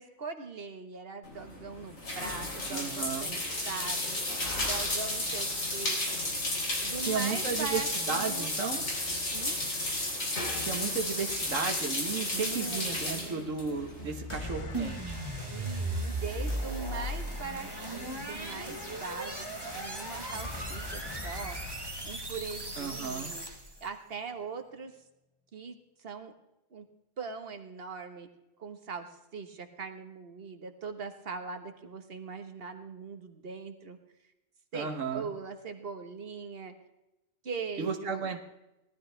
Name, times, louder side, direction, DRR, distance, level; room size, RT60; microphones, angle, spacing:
voice 1, 0.0-4.2 4.6-6.4 6.8-8.5 9.3-9.6 12.3-13.6 15.5-19.5 19.7-21.6 22.0-23.5 23.8-24.9 25.5-26.3 26.7-26.8 27.2-28.3 28.6-34.0 34.7-36.7 37.4-38.3, right 5 dB, 50° right, 7 dB, 1.5 m, -41 dB
sound 1, 1.2-14.4, left 1 dB, 85° left, 3.8 m, -33 dB
voice 2, 2.7-3.4 7.0-8.8 10.6-15.2 22.8-23.3 34.7-35.3 37.8-38.4, right 5 dB, 75° right, 5 dB, 1.4 m, -34 dB
sound 2, 14.3-23.3, left 2 dB, 25° left, 0.9 m, -44 dB
sound 3, 14.7-23.8, right 1 dB, 20° right, 1.3 m, -37 dB
18.5 x 12.5 x 3.3 m, 0.93 s
omnidirectional pair, 1.4 m